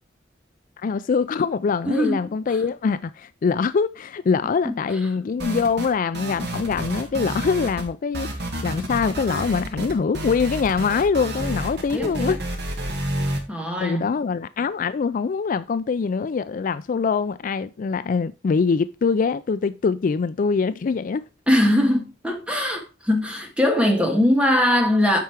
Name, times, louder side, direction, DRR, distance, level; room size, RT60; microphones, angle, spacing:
voice 1, 0.8-12.4 13.8-21.2, left 5 dB, 45° left, 0.3 m, -23 dB
voice 2, 1.9-2.2 4.7-4.8 11.9-12.4 13.5-14.1 21.5-25.2, left 1 dB, 5° right, 1.8 m, -21 dB
sound 1, 5.4-5.9 6.1-7.9 8.1-13.4, right 1 dB, 60° right, 2.1 m, -29 dB
8.3 x 5.6 x 4.6 m
head